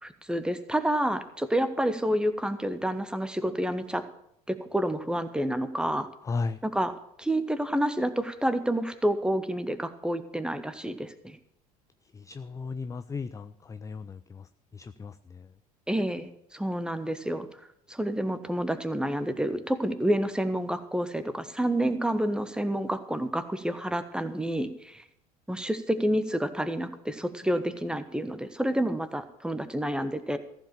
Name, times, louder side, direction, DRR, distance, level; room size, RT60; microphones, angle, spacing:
voice 1, 0.0-4.0 4.5-6.1 6.6-11.4 15.9-17.5 17.9-25.0 25.5-30.4, right 1 dB, 5° right, 11 dB, 1.0 m, -29 dB
voice 2, 6.2-6.6 12.1-15.5, left 4 dB, 15° left, 12 dB, 0.4 m, -36 dB
14.5 x 5.1 x 8.8 m, 0.75 s
hypercardioid pair, 70°, 19 cm